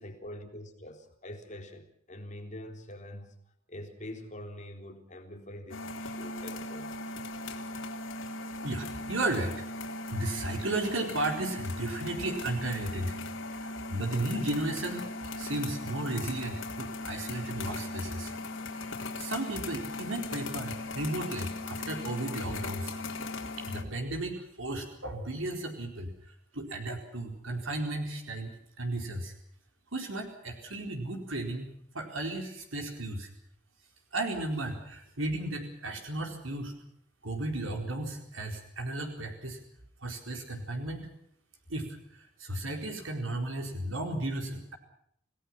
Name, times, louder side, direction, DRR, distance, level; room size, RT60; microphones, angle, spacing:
voice 1, 0.0-3.3 3.7-6.9, left 1 dB, 40° left, 4 dB, 3.8 m, -44 dB
sound 1, 5.7-23.8, left 2 dB, 75° left, 4.0 m, -38 dB
voice 2, 8.6-9.6 10.1-13.2 13.5-15.1 15.3-18.3 18.9-22.9 23.5-26.1 26.5-29.3 29.9-31.7 31.9-33.3 34.1-36.7 37.2-39.6 40.0-41.1 41.7-42.0 42.4-44.8, right 2 dB, 90° right, 3 dB, 4.5 m, -34 dB
29.0 x 18.5 x 6.0 m, 0.69 s
head